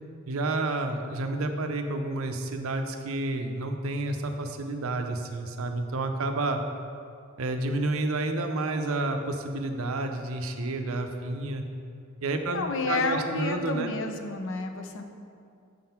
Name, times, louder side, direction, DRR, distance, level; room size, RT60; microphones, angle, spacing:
voice 1, 0.3-6.6 7.4-11.6 12.2-13.9, right 2 dB, 70° right, 5 dB, 0.6 m, -30 dB
voice 2, 12.4-15.0, left 3 dB, 60° left, 6 dB, 0.6 m, -30 dB
7.6 x 3.7 x 5.7 m, 2.5 s
head